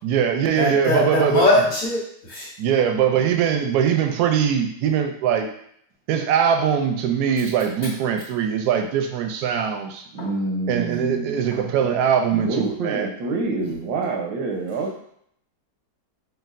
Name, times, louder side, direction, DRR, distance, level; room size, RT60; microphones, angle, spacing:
voice 1, 0.0-1.7 2.6-5.5 6.1-10.0 10.7-13.1, right 7 dB, 70° right, 4 dB, 1.0 m, -21 dB
voice 2, 0.6-2.0 2.3-2.5 10.2-10.3, left 1 dB, 60° left, -9 dB, 1.9 m, -20 dB
voice 3, 10.1-11.7 12.3-15.0, right 3 dB, 90° right, 0 dB, 1.5 m, -27 dB
6.4 x 2.4 x 2.5 m, 0.69 s
omnidirectional pair, 1.9 m